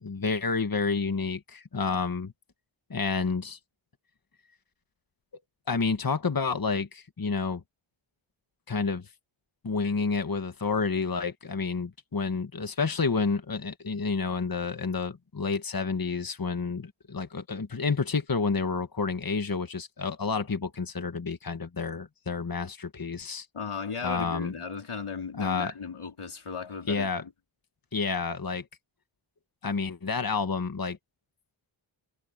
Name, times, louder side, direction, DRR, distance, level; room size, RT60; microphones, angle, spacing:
voice 1, 0.0-2.3 2.9-3.6 5.7-7.6 8.7-9.1 9.6-23.5 24.0-24.5 25.4-25.7 26.9-27.2 27.9-28.6 29.6-31.0, left 4 dB, 45° left, 1.5 m, -29 dB
voice 2, 23.5-27.3, left 5 dB, 90° left, 3.7 m, -36 dB
wide cardioid pair, 55°, 49 cm